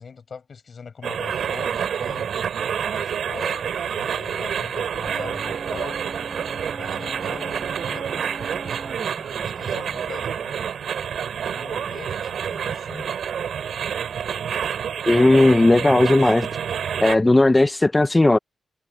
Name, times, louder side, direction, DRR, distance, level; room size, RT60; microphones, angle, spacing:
voice 1, 0.0-2.3 2.9-6.0 6.8-8.5 9.4-10.6 11.5-13.1, left 5 dB, 45° left, 7.8 m, -40 dB
sound 1, 1.0-17.2, right 8 dB, 75° right, 8.0 m, -28 dB
sound 2, 5.1-11.4, right 1 dB, 10° right, 6.7 m, -41 dB
voice 2, 15.1-16.5 17.0-18.4, left 2 dB, 15° left, 0.4 m, -16 dB
wide cardioid pair, 160°, 0 cm